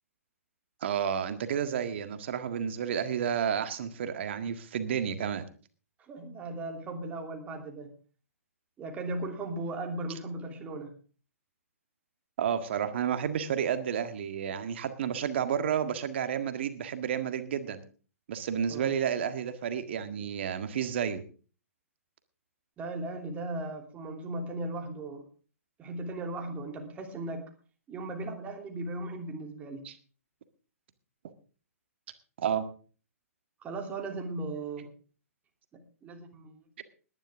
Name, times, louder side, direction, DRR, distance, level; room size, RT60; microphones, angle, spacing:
voice 1, 0.8-5.4 12.4-17.8 18.3-21.2 29.8-29.9 32.4-32.6, right 8 dB, 50° right, 10 dB, 1.7 m, -31 dB
voice 2, 6.1-7.9 8.8-10.9 18.7-18.9 22.8-25.3 25.8-27.5 27.9-29.8 33.6-34.9 35.7-36.6, right 2 dB, 20° right, 3 dB, 2.9 m, -37 dB
20.0 x 11.0 x 3.6 m, 0.38 s
figure-of-eight pair, 120°, 8 cm